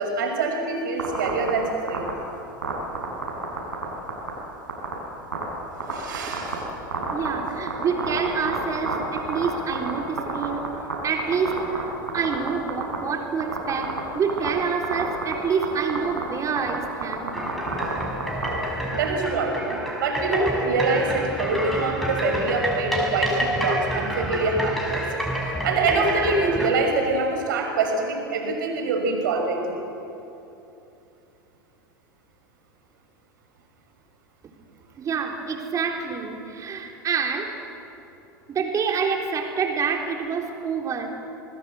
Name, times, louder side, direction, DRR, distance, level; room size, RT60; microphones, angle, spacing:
voice 1, 0.0-2.1 5.8-6.7 18.9-25.1 25.4-29.8, right 3 dB, 70° right, 3 dB, 5.8 m, -25 dB
sound 1, 1.0-1.5 1.9-2.1 2.6-3.8 4.1-4.3 4.7-4.9 5.3-5.4 5.8-6.5 6.9-9.9 10.2-10.9 11.2-11.8 12.1-13.0 13.4-14.0 14.3-14.5 14.8-15.3 15.6-15.7 15.9-16.2 16.6-16.8 17.0-18.5, right 5 dB, 85° right, 6.8 m, -27 dB
voice 2, 7.1-10.7 11.0-17.3 35.0-37.5 38.5-41.1, right 5 dB, 30° right, 2 dB, 3.9 m, -27 dB
sound 2, 17.3-26.7, equal, ahead, 5.5 m, -28 dB
28.0 x 20.0 x 7.9 m, 2.9 s
figure-of-eight pair, 85°, 11 cm